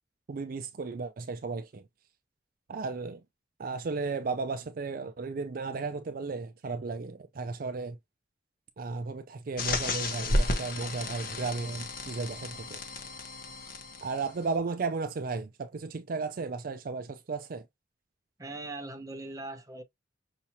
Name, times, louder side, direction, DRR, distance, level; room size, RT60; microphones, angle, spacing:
voice 1, 0.3-1.8 2.7-3.2 3.6-8.0 8.8-12.8 14.0-17.6, right 4 dB, 55° right, 0.4 m, -34 dB
sound 1, 9.6-14.4, left 2 dB, 55° left, 1.0 m, -33 dB
voice 2, 18.4-19.8, right 2 dB, 20° right, 0.9 m, -40 dB
5.8 x 2.9 x 2.7 m
head